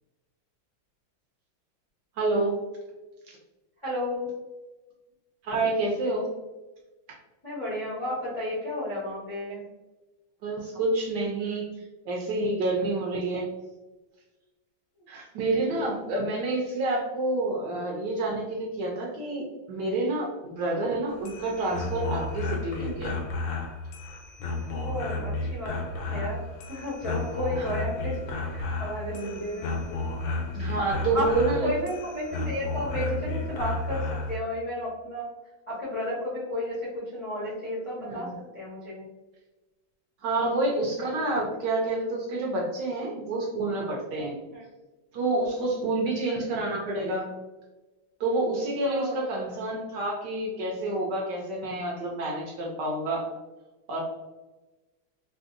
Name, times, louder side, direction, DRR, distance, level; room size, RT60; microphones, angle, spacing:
voice 1, 2.2-2.5 5.4-6.3 10.4-11.7 12.1-13.5 15.1-23.2 27.6-27.8 29.1-29.5 30.5-31.7 38.0-38.3 40.2-44.4 45.1-47.3 48.2-53.3 53.9-54.0, right 2 dB, 70° right, -1 dB, 1.1 m, -28 dB
voice 2, 3.8-4.3 7.4-9.6 15.7-16.1 24.7-25.8 26.1-29.7 31.1-31.3 31.6-35.3 35.7-39.1 40.4-40.5 44.5-44.6 46.3-46.6 48.8-49.2, left 1 dB, 40° left, -8 dB, 0.4 m, -33 dB
sound 1, 21.1-34.4, left 2 dB, 75° left, 1.3 m, -32 dB
3.4 x 2.6 x 2.5 m, 1.1 s
omnidirectional pair, 2.2 m